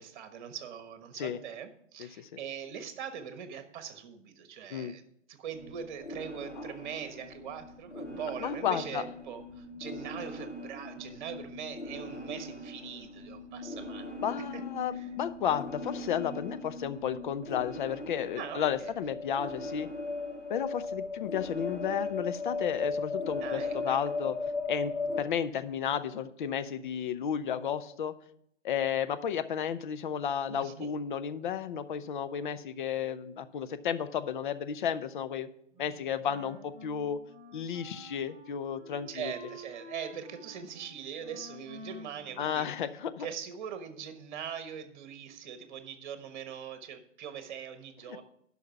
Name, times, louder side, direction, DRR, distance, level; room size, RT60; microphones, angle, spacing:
voice 1, 0.0-14.1 14.5-14.6 14.9-15.1 18.4-18.9 23.4-24.0 30.5-30.9 39.1-42.7 43.2-48.2, right 8 dB, 40° right, 10 dB, 1.3 m, -42 dB
sound 1, 5.5-25.2, left 3 dB, 85° left, 3.4 m, -38 dB
voice 2, 8.4-9.0 14.2-19.9 20.5-24.4 24.7-28.1 28.6-35.5 35.8-37.2 37.5-39.3 42.4-43.3, left 8 dB, 40° left, 12 dB, 0.6 m, -33 dB
Wind instrument woodwind instrument, 35.7-43.2, equal, 5° right, 5.0 m, -50 dB
11.5 x 5.6 x 5.8 m, 0.73 s
figure-of-eight pair, 120°, 37 cm